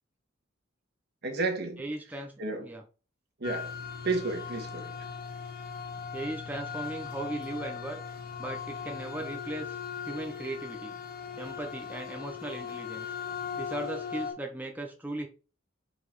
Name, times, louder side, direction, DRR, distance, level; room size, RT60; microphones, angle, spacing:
voice 1, 1.2-1.8 2.4-2.7 3.4-3.7 4.0-4.9, right 3 dB, 55° right, 1.8 m, -31 dB
voice 2, 1.8-2.8 6.1-8.0 8.4-9.8 10.1-10.9 11.4-13.1 13.6-15.3, right 1 dB, 10° right, 0.8 m, -37 dB
sound 1, 3.4-14.3, left 6 dB, 50° left, 1.7 m, -39 dB
5.4 x 4.1 x 4.6 m
head